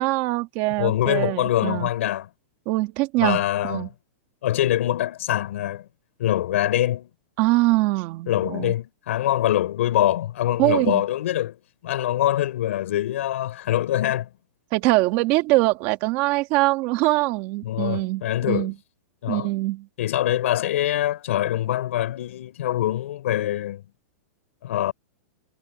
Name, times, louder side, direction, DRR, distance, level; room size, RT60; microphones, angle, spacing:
voice 1, 0.0-1.9 2.7-3.9 7.4-8.7 10.6-11.0 14.7-18.7 19.3-19.9, right 20 dB, 30° right, 1.8 m, -23 dB
voice 2, 0.8-2.3 3.2-3.9 4.4-5.9 6.2-7.1 8.3-11.5 11.8-14.3 17.6-18.7 19.2-19.5 20.0-23.8 24.6-24.9, left 13 dB, 60° left, 4.6 m, -24 dB
supercardioid pair, 170°, 8 cm